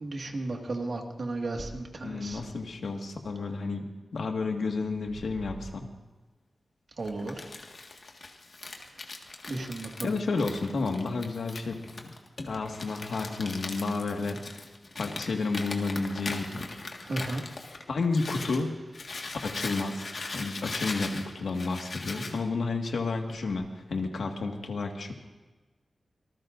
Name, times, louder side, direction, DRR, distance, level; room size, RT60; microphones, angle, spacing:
voice 1, 0.0-2.4 7.0-7.3 9.5-10.1 17.1-17.4, right 2 dB, 55° right, 2 dB, 1.9 m, -34 dB
voice 2, 2.0-5.9 10.0-12.1 12.4-14.6 15.0-16.7 17.9-18.7 19.4-20.0 20.3-25.1, left 3 dB, 85° left, 3 dB, 1.8 m, -31 dB
Crumpling crinkling, 7.0-18.6 18.9-22.4, left 3 dB, 55° left, 1.8 m, -40 dB
25.5 x 19.5 x 2.6 m, 1.2 s
wide cardioid pair, 135°, 0 cm